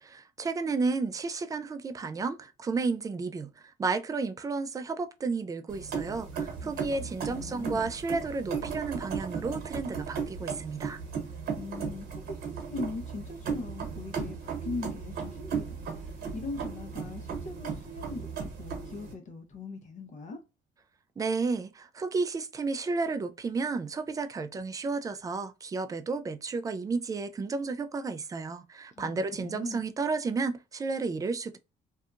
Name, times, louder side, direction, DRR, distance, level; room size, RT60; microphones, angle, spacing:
voice 1, 0.0-11.0 21.2-31.6, right 4 dB, 20° right, 0.3 m, -32 dB
sound 1, 5.7-19.1, right 6 dB, 65° right, 1.1 m, -36 dB
voice 2, 6.6-7.9 11.6-20.4 28.9-29.8, left 3 dB, 45° left, 0.9 m, -41 dB
2.7 x 2.3 x 2.5 m
cardioid pair, 110°, 17 cm